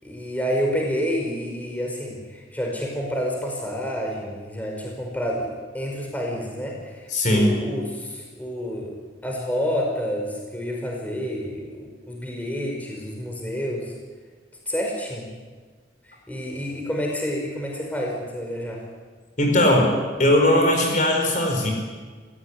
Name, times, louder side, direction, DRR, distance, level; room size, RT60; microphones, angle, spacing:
voice 1, 0.0-8.9 9.2-13.9 14.7-15.3 16.3-18.8, equal, 10° left, -1 dB, 5.2 m, -29 dB
voice 2, 7.1-7.6 19.4-19.9 20.2-21.7, left 1 dB, 40° left, 2 dB, 4.8 m, -19 dB
27.0 x 16.5 x 9.9 m, 1.5 s
head